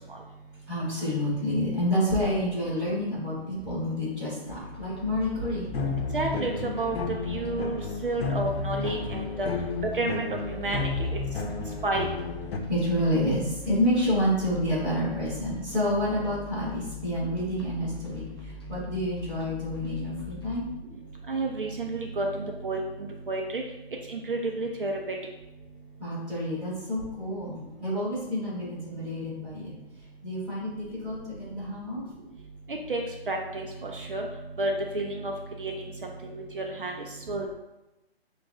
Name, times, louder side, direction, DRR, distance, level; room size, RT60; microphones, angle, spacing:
voice 1, 0.7-5.7 12.7-20.6 26.0-29.7 30.2-32.0, equal, ahead, -18 dB, 1.1 m, -29 dB
heavy tom, 4.4-20.7, left 5 dB, 25° left, 0.5 m, -43 dB
sound 1, 5.7-12.6, left 4 dB, 65° left, 0.8 m, -32 dB
voice 2, 6.1-7.0 7.3-9.5 9.9-11.1 11.8-12.1 21.3-22.8 23.3-23.6 24.1-24.9 32.9-34.3 34.6-35.3 35.6-35.9 36.2-36.9 37.3-37.5, right 2 dB, 55° right, 1 dB, 0.5 m, -30 dB
6.7 x 2.4 x 2.5 m, 0.98 s
hypercardioid pair, 170°, 32 cm